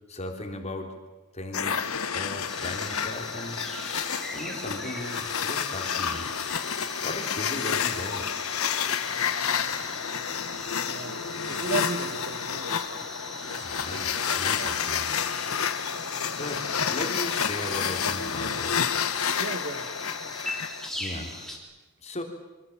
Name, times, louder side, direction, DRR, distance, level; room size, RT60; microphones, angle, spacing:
voice 1, 0.1-0.9 1.3-3.6 4.3-6.3 7.0-8.3 13.6-15.1 16.3-18.7 20.9-21.4 22.0-22.2, left 1 dB, 30° left, 4 dB, 3.6 m, -37 dB
sound 1, 1.5-20.9, left 7 dB, 70° left, 1.3 m, -30 dB
sound 2, 2.5-21.6, left 1 dB, ahead, 4.1 m, -40 dB
voice 2, 9.4-9.8 10.9-11.2 11.5-13.1 13.4-14.7 16.2-16.3 19.0-19.1 19.4-19.9, right 3 dB, 55° right, 9 dB, 1.8 m, -36 dB
26.5 x 24.5 x 7.4 m, 1.1 s
head